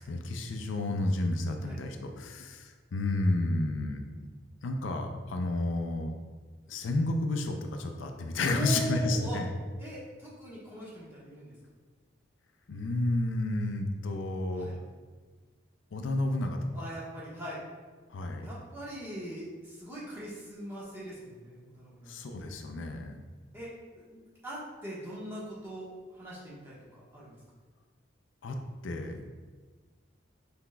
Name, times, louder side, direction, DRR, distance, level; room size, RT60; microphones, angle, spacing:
voice 1, 0.0-4.0 4.6-6.1 6.7-9.5 12.7-14.7 15.9-16.6 18.1-18.5 22.1-23.2 28.4-28.6 28.8-29.3, left 2 dB, 85° left, 5 dB, 0.4 m, -31 dB
voice 2, 8.4-9.4 9.8-11.5 14.5-14.8 16.7-17.6 18.4-22.1 23.5-27.3, equal, 15° right, -8 dB, 1.1 m, -41 dB
5.9 x 3.5 x 2.2 m, 1.4 s
head